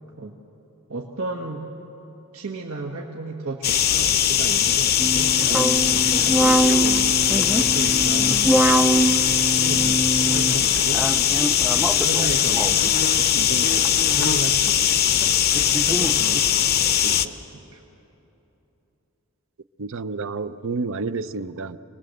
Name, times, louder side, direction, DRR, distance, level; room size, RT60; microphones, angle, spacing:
voice 1, 0.9-1.6 2.3-6.1 6.4-7.1 7.5-8.6 8.8-9.2 9.5-10.0 10.3-11.1 11.7-15.4 15.8-17.8, right 3 dB, 85° right, 0 dB, 1.6 m, -34 dB
sound 1, 3.6-17.3, left 9 dB, 45° left, 0.7 m, -20 dB
sound 2, 5.0-13.0 13.8-14.3 14.7-14.8 15.1-16.4, right 2 dB, 5° right, 0.4 m, -24 dB
voice 2, 19.8-21.8, right 4 dB, 65° right, 13 dB, 0.6 m, -29 dB
27.0 x 20.0 x 7.8 m, 3.0 s
head